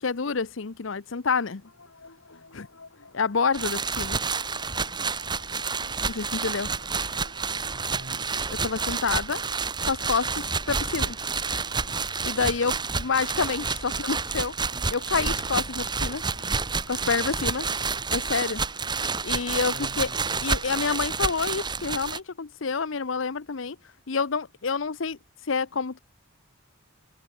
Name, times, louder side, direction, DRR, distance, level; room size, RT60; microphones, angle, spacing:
voice 1, 0.0-1.6 2.5-2.7 3.1-4.2 6.1-6.7 8.5-9.4 9.8-11.2 12.2-14.5 14.9-16.2 16.9-17.7 18.1-18.6 19.2-20.1 20.4-23.8 24.1-25.2 25.5-26.0, left 5 dB, 65° left, 0.8 m, -28 dB
sound 1, 1.4-9.6 10.1-17.5, left 2 dB, 90° left, 3.7 m, -52 dB
sound 2, 3.5-22.2, right 4 dB, 20° right, 1.3 m, -29 dB
voice 2, 7.4-8.3 16.9-17.2 19.6-20.5, right 1 dB, 50° right, 7.5 m, -45 dB
head